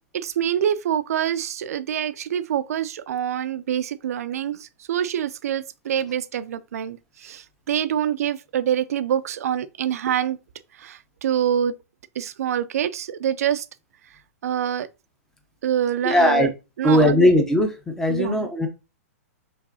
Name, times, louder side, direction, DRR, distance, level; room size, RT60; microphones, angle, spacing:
voice 1, 0.1-10.4 10.7-11.8 12.2-13.7 14.4-14.9 15.6-16.5 16.8-17.3 18.1-18.4, right 9 dB, 70° right, 0.4 m, -25 dB
voice 2, 16.0-16.5 16.8-17.7 18.0-18.7, left 1 dB, 5° left, 0.8 m, -18 dB
5.3 x 3.2 x 2.7 m
hypercardioid pair, 145°, 9 cm